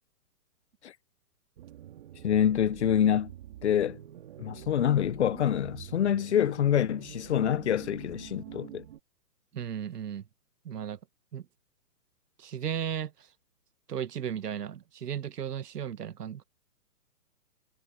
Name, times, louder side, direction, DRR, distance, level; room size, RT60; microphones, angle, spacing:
sound 1, 1.6-9.0, right 12 dB, 35° right, 2.5 m, -46 dB
voice 1, 2.2-3.3 3.6-4.0 4.4-8.8, left 9 dB, 45° left, 0.8 m, -26 dB
voice 2, 9.5-10.2 10.6-11.0 11.3-11.4 12.4-13.1 13.9-16.4, right 9 dB, 75° right, 1.6 m, -35 dB
hypercardioid pair, 170°, 48 cm